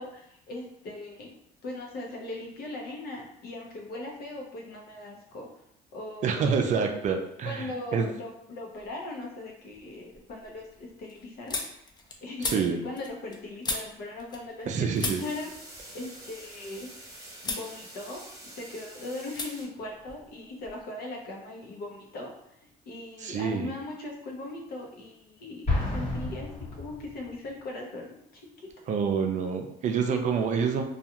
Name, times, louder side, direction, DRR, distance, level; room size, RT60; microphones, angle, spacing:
voice 1, 0.0-1.3 1.6-5.5 5.9-6.7 7.4-11.9 12.2-16.9 17.4-22.3 22.8-26.5 26.8-28.4, left 2 dB, 65° left, -1 dB, 0.8 m, -39 dB
voice 2, 6.2-7.7 7.9-8.1 12.4-12.8 14.7-15.2 23.2-23.7 28.9-30.8, right 6 dB, 45° right, 4 dB, 0.4 m, -27 dB
sound 1, 8.7-9.3 9.6-14.7 15.0-17.0 17.4-17.7 18.1-18.8 19.3-19.5 19.8-20.8, left 3 dB, 25° left, 0.4 m, -38 dB
sound 2, 14.9-19.6, right 1 dB, 15° right, 0.9 m, -47 dB
Explosion, 25.7-27.5, left 2 dB, 45° left, 1.1 m, -30 dB
2.3 x 2.3 x 2.8 m, 0.75 s
cardioid pair, 110°, 17 cm